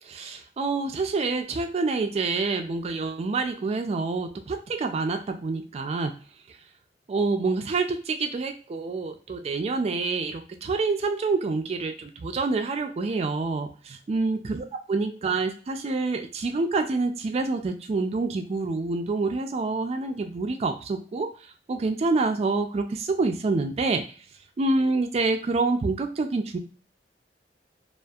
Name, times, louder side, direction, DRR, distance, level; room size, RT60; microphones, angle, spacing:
voice 1, 0.1-6.1 6.5-6.6 7.1-24.1 24.6-26.6, right 3 dB, 35° right, 5 dB, 0.3 m, -27 dB
2.6 x 2.4 x 2.3 m, 0.39 s
head